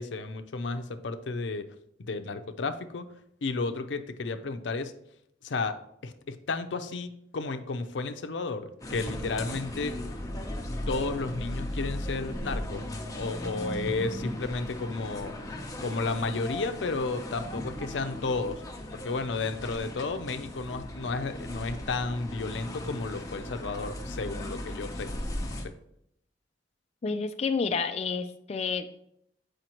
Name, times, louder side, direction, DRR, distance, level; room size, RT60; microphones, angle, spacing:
voice 1, 0.0-1.7 2.0-3.1 3.4-4.9 5.4-5.8 6.0-10.0 10.9-12.8 13.2-15.6 15.8-18.6 18.9-25.1 25.5-25.6, left 3 dB, 85° left, 9 dB, 0.5 m, -32 dB
sound 1, 8.8-25.7, left 1 dB, 20° left, 0.8 m, -37 dB
voice 2, 27.0-29.0, left 5 dB, 35° left, 6 dB, 0.3 m, -30 dB
7.6 x 4.9 x 2.9 m, 0.75 s
head